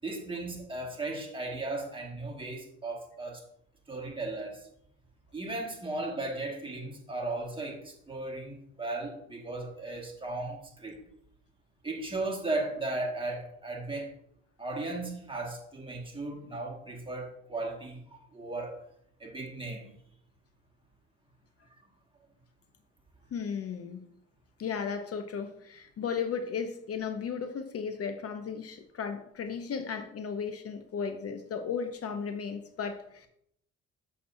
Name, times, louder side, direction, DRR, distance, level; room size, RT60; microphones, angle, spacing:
voice 1, 0.0-3.4 3.9-4.7 5.3-11.0 11.8-14.1 14.6-18.8 19.2-19.9, right 2 dB, 15° right, 0 dB, 1.6 m, -36 dB
voice 2, 23.3-24.1 24.6-33.3, left 6 dB, 50° left, 8 dB, 0.7 m, -35 dB
6.8 x 6.6 x 2.6 m, 0.73 s
cardioid pair, 90°, 30 cm